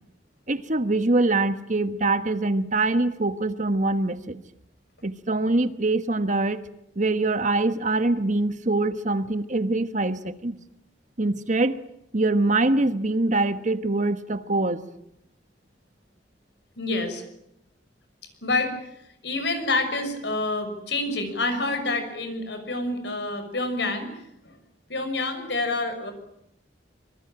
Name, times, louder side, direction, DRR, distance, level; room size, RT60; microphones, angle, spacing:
voice 1, 0.5-4.4 5.0-6.6 7.0-10.6 11.2-11.8 12.1-14.8, right 2 dB, 40° right, 11 dB, 1.4 m, -24 dB
voice 2, 16.8-17.2 18.4-18.8 19.2-24.6 24.9-26.1, left 2 dB, 65° left, 9 dB, 6.1 m, -28 dB
25.5 x 24.5 x 8.8 m, 0.77 s
head